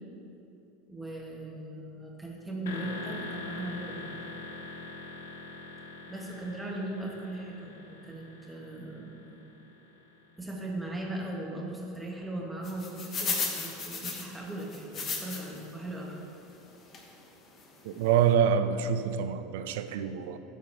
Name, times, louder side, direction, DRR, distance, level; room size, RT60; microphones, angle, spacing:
voice 1, 0.9-4.1 6.1-9.5 10.4-16.1, right 1 dB, 5° right, 1.6 m, -38 dB
sound 1, 2.7-10.4, left 2 dB, 65° left, 0.6 m, -43 dB
sound 2, 12.6-15.7 16.1-16.2 16.9-17.1 17.6-17.7 17.9-18.1, left 4 dB, 35° left, 1.1 m, -34 dB
voice 2, 17.8-20.4, right 8 dB, 60° right, 0.4 m, -26 dB
12.5 x 4.7 x 3.6 m
figure-of-eight pair, 80°, 0 cm